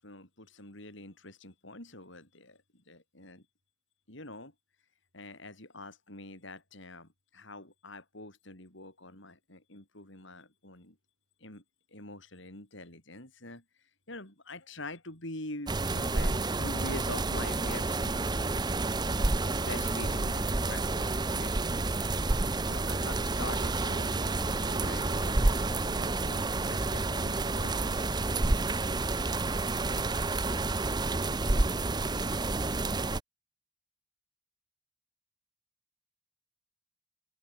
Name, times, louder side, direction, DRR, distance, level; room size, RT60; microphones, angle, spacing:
voice 1, 0.0-3.4 4.1-4.5 5.1-11.0 11.4-11.6 11.9-13.6 14.1-18.3 19.4-21.9 22.7-28.0, left 2 dB, 65° left, 7.7 m, -45 dB
sound 1, 15.7-33.2, right 2 dB, 20° right, 0.7 m, -29 dB
open air
head